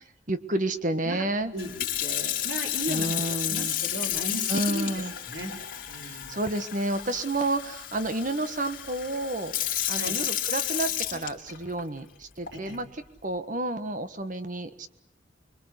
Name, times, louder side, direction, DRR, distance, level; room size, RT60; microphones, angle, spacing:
voice 1, 0.3-1.5 2.1-2.2 2.9-3.7 4.5-5.1 6.0-9.5 9.9-12.9 13.2-14.9, right 2 dB, 45° right, 10 dB, 1.5 m, -30 dB
Sink (filling or washing) / Fill (with liquid), 1.6-11.8 12.5-12.7, left 12 dB, 50° left, 3.7 m, -32 dB
voice 2, 2.0-5.6 5.9-6.4 10.0-10.2 12.5-12.8, right 1 dB, 65° right, 2 dB, 5.3 m, -36 dB
26.0 x 22.5 x 8.2 m, 0.78 s
head